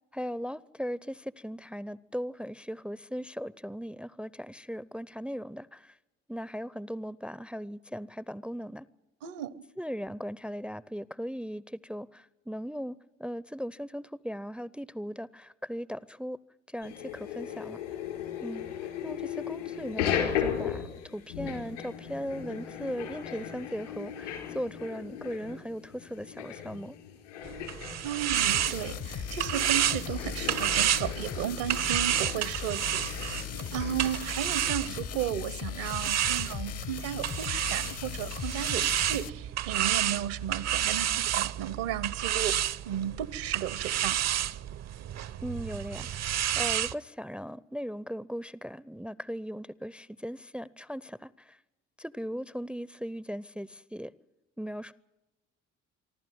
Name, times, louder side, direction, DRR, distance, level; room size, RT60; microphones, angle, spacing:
voice 1, 0.1-6.0 6.3-8.9 9.8-16.4 16.7-17.8 18.4-18.7 19.0-27.0 45.4-51.6 52.0-54.1 54.6-54.9, equal, 5° right, 0.6 m, -38 dB
voice 2, 9.2-9.6 28.0-33.3 33.7-42.6 42.8-44.2, right 11 dB, 65° right, 1.2 m, -34 dB
sound 1, 16.8-34.3, left 9 dB, 80° left, 4.2 m, -37 dB
sound 2, 27.4-35.3 35.9-46.9, right 11 dB, 45° right, 0.8 m, -30 dB
sound 3, 28.3-39.3, left 10 dB, 40° left, 0.9 m, -38 dB
26.5 x 12.0 x 9.4 m
figure-of-eight pair, 50°, 36 cm